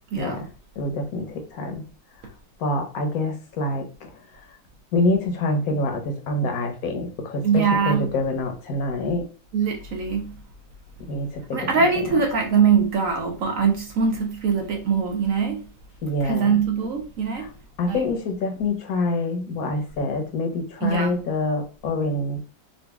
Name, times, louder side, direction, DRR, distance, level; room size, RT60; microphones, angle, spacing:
voice 1, 0.2-0.5 0.8-1.9 2.6-4.5 4.9-9.3 11.0-11.8 16.0-16.5 17.3-17.5 17.8-22.4, left 2 dB, 60° left, 1.2 m, -26 dB
voice 2, 7.4-8.1 9.5-10.3 11.5-15.6 16.2-17.5 17.9-18.0 20.8-21.1, right 6 dB, 60° right, 0.9 m, -22 dB
4.0 x 2.4 x 3.4 m
omnidirectional pair, 2.0 m